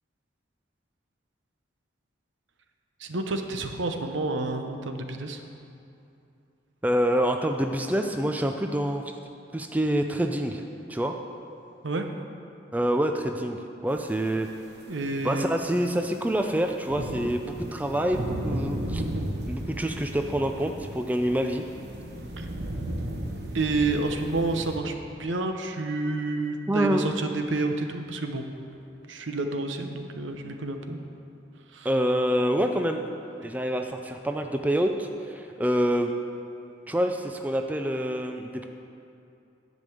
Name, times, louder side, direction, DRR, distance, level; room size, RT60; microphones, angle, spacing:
voice 1, 3.0-5.4 11.8-12.1 14.9-15.5 22.4-22.5 23.5-24.9 25.2-28.4 29.1-31.0 31.7-31.9, right 2 dB, 80° right, 5 dB, 0.8 m, -29 dB
voice 2, 6.8-9.0 9.5-10.6 10.9-11.2 12.7-14.5 15.2-19.0 19.5-21.6 26.7-27.0 31.8-33.1 33.4-36.1 36.9-38.7, equal, 10° right, 5 dB, 0.4 m, -26 dB
sound 1, 14.4-14.5 15.0-24.8, right 1 dB, 55° right, 1.1 m, -34 dB
11.0 x 5.2 x 7.8 m, 2.6 s
head